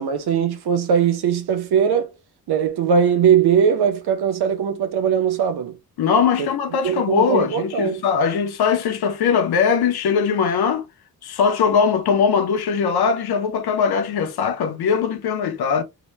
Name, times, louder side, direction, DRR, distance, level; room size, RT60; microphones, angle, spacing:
voice 1, 0.0-2.1 2.5-5.7 6.4-6.5 6.8-8.0, right 7 dB, 90° right, 0.7 m, -20 dB
voice 2, 6.0-10.9 11.2-15.8, left 6 dB, 80° left, 0.7 m, -20 dB
2.9 x 2.1 x 3.0 m
wide cardioid pair, 170°, 37 cm